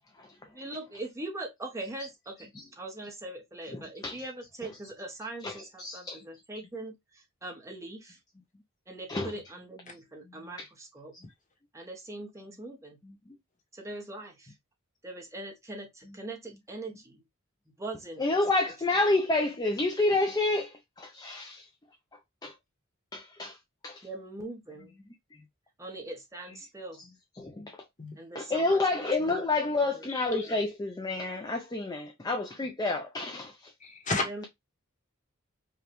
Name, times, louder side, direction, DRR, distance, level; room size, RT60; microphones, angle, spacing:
voice 1, 0.4-8.2 8.9-11.1 11.7-13.0 13.7-14.5 15.0-17.2 17.8-18.6 24.0-24.9 25.8-27.0 28.2-29.5 29.7-30.1 34.2-34.4, right 2 dB, 15° right, 0.8 m, -42 dB
voice 2, 3.7-4.2 5.4-5.5 5.8-6.2 9.1-9.3 10.6-10.7 18.2-21.7 22.4-22.5 23.1-23.6 23.8-24.0 27.4-27.8 28.4-33.7, left 2 dB, 20° left, 0.4 m, -29 dB
voice 3, 30.1-30.5 33.8-34.4, left 3 dB, 35° left, 1.0 m, -33 dB
5.1 x 2.3 x 3.0 m
head